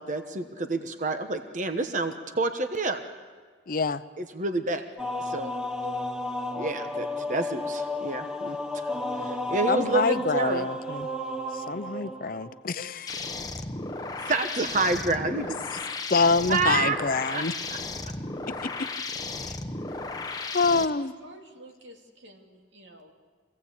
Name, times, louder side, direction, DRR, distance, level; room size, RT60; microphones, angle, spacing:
voice 1, 0.0-3.0 4.2-4.8 5.2-5.5 6.6-8.9 9.2-10.7 14.3-15.6 16.5-17.0 17.3-17.8, right 3 dB, 40° right, 7 dB, 1.2 m, -28 dB
voice 2, 3.7-4.0 9.7-11.1 11.7-13.2 16.1-17.5 18.6-18.9 20.5-21.1, left 4 dB, 50° left, 12 dB, 0.6 m, -26 dB
sound 1, 5.0-12.6, left 1 dB, 5° right, 0.9 m, -32 dB
sound 2, 13.1-20.9, left 3 dB, 20° left, 0.9 m, -35 dB
voice 3, 21.2-23.1, right 1 dB, 80° right, 2 dB, 2.8 m, -50 dB
24.5 x 16.5 x 8.4 m, 1.5 s
head